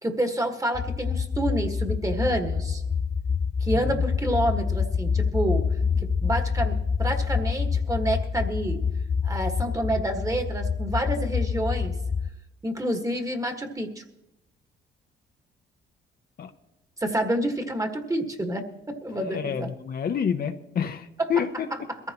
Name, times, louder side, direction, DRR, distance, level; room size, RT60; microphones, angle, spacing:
voice 1, 0.0-2.8 3.6-5.7 6.0-8.8 9.2-12.0 12.6-14.0 17.0-19.7 21.7-22.0, right 1 dB, 15° right, 6 dB, 1.6 m, -28 dB
sound 1, 0.7-12.3, left 5 dB, 25° left, 0.4 m, -27 dB
voice 2, 19.1-21.7, left 7 dB, 50° left, 7 dB, 0.9 m, -28 dB
21.5 x 14.5 x 3.0 m, 0.92 s
cardioid pair, 90°, 20 cm